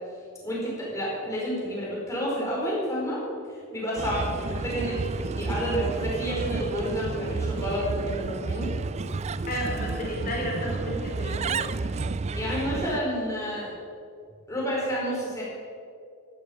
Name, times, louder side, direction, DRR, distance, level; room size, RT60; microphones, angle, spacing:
voice 1, 0.4-3.2 3.5-8.7 12.3-13.7 14.5-15.4, equal, 15° left, -5 dB, 4.8 m, -30 dB
Bird, 4.0-13.0, right 4 dB, 30° right, 0.3 m, -31 dB
voice 2, 9.5-11.6, left 1 dB, 40° left, -2 dB, 4.3 m, -32 dB
13.0 x 11.5 x 7.2 m, 2.3 s
head